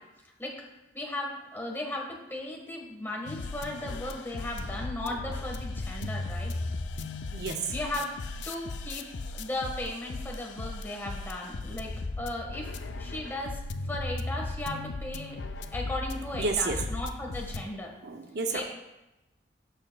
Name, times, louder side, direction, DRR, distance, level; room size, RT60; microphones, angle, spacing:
voice 1, 0.9-6.5 7.7-8.1 8.4-9.1 9.3-11.9 12.2-12.7 13.0-13.6 13.8-15.4 15.7-17.9 18.5-18.7, left 1 dB, 10° left, 0 dB, 1.4 m, -36 dB
sound 1, 3.3-17.6, left 2 dB, 75° left, 0.5 m, -37 dB
voice 2, 7.3-7.7 16.4-16.8 18.0-18.7, right 4 dB, 60° right, 5 dB, 0.6 m, -31 dB
12.5 x 6.6 x 2.3 m, 0.97 s
head